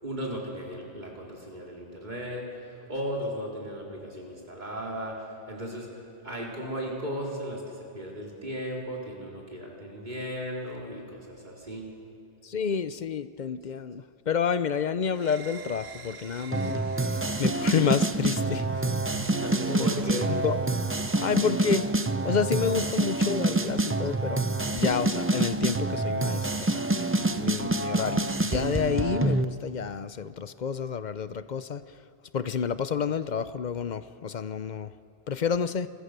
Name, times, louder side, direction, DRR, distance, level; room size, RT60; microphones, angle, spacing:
voice 1, 0.0-2.4 2.9-5.1 5.5-5.9 6.2-7.6 7.9-11.9 19.2-20.3, equal, 45° right, -3 dB, 4.4 m, -36 dB
voice 2, 12.4-16.8 17.4-18.7 19.1-19.3 19.7-19.9 20.2-20.6 21.2-21.9 22.2-26.9 27.2-31.8 32.3-34.9 35.3-35.9, left 6 dB, 50° left, 13 dB, 0.7 m, -29 dB
sound 1, 15.1-21.7, right 8 dB, 75° right, 1.2 m, -41 dB
sound 2, 16.5-29.5, right 2 dB, 15° right, 0.6 m, -27 dB
27.5 x 23.0 x 6.8 m, 2.6 s
omnidirectional pair, 1.0 m